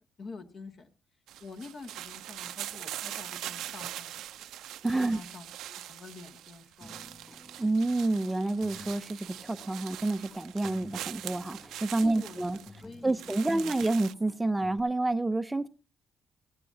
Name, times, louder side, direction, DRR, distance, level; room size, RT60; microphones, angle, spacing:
voice 1, 0.2-0.9 1.4-4.2 5.0-7.0 12.0-13.7, left 4 dB, 50° left, 6 dB, 2.2 m, -47 dB
sound 1, 1.3-14.1, right 13 dB, 85° right, 0.6 m, -42 dB
voice 2, 4.8-5.2 7.6-12.6 13.0-15.7, right 2 dB, 10° right, 12 dB, 0.6 m, -29 dB
Human voice / Acoustic guitar, 6.8-14.8, left 2 dB, 15° left, 3.8 m, -54 dB
17.5 x 14.5 x 2.8 m, 0.33 s
cardioid pair, 90°, 0 cm